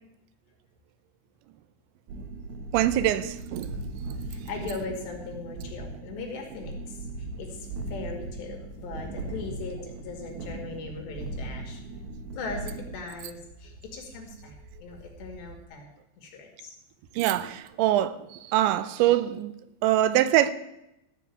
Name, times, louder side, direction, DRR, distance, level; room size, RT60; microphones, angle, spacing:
sound 1, 2.1-15.7, right 2 dB, 75° right, 3.4 m, -39 dB
voice 1, 2.7-3.8 17.2-18.2 18.5-19.5 19.8-20.5, right 13 dB, 90° right, 3.0 m, -23 dB
voice 2, 4.3-7.0 7.4-11.8 12.4-14.5 14.8-15.9 16.2-16.7, left 4 dB, 75° left, 4.4 m, -39 dB
14.0 x 6.2 x 8.5 m
omnidirectional pair, 5.1 m